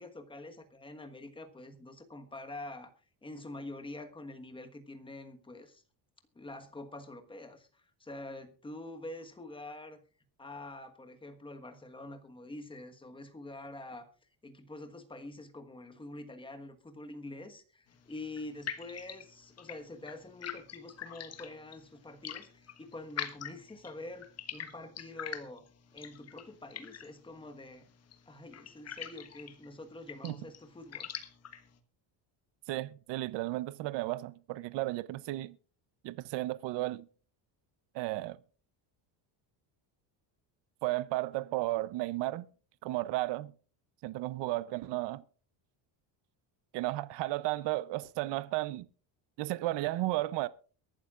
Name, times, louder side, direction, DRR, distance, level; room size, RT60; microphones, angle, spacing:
voice 1, 0.0-2.9 3.2-5.8 6.3-10.0 10.4-14.1 14.4-24.3 24.5-25.6 25.9-27.9 28.3-31.1, left 2 dB, 10° left, 1.3 m, -46 dB
sound 1, 17.9-31.8, left 9 dB, 35° left, 1.3 m, -46 dB
voice 2, 32.7-35.6 36.0-37.1 37.9-38.4 40.8-42.5 42.8-43.5 44.0-45.2 46.7-48.9 49.4-50.5, right 18 dB, 65° right, 0.7 m, -33 dB
23.0 x 12.0 x 2.4 m
cardioid pair, 170°, 46 cm